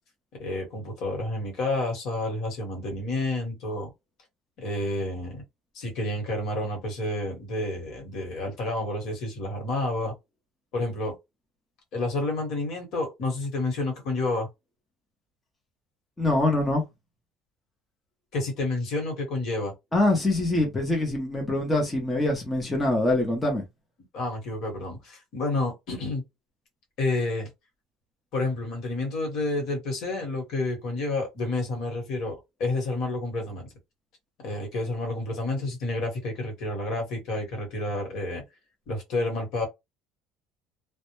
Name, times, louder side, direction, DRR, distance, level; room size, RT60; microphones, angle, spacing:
voice 1, 0.4-3.9 4.6-5.4 5.7-10.1 10.7-11.1 11.9-14.5 18.3-19.7 24.1-26.2 27.0-27.5 28.3-33.7 34.4-38.4 38.9-39.7, left 2 dB, 55° left, 1.1 m, -29 dB
voice 2, 16.2-16.8 19.9-23.6, left 2 dB, 10° left, 0.6 m, -24 dB
2.1 x 2.0 x 2.9 m
cardioid pair, 155°, 0 cm